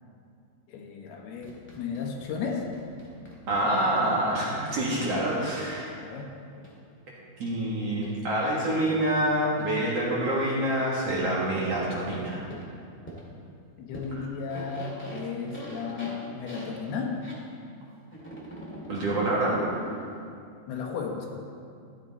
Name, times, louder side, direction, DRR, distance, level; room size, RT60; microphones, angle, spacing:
voice 1, 0.7-2.7 6.0-6.3 13.8-17.2 20.7-21.3, left 5 dB, 90° left, 0 dB, 3.3 m, -34 dB
sound 1, 1.4-5.8 6.6-6.7 8.0-8.1 8.7-8.8 9.6-9.7 11.1-11.2 11.6-11.8 12.5-12.6 13.1-13.2 13.9-14.1 14.3-17.4 18.1-20.2, equal, 10° left, 0.7 m, -42 dB
voice 2, 3.5-5.9 7.4-12.4 14.1-14.2 18.9-19.6, right 1 dB, 50° right, -5 dB, 2.1 m, -26 dB
14.0 x 9.7 x 4.2 m, 2.4 s
omnidirectional pair, 4.4 m